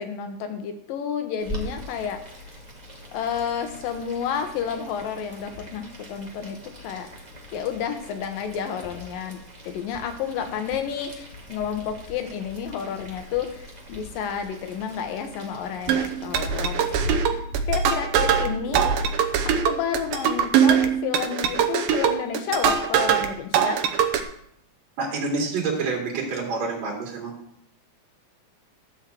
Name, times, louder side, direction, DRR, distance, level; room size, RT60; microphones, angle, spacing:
voice 1, 0.0-2.2 3.1-7.1 7.5-9.4 9.6-19.0 19.4-23.8, left 7 dB, 75° left, 7 dB, 2.8 m, -31 dB
Boiling, 1.4-17.1, equal, 20° right, 1.1 m, -42 dB
sound 1, 15.9-23.3 23.5-24.2, right 8 dB, 80° right, 2.6 m, -22 dB
voice 2, 25.0-27.3, right 4 dB, 50° right, -2 dB, 3.5 m, -28 dB
13.0 x 4.5 x 7.6 m, 0.70 s
omnidirectional pair, 4.2 m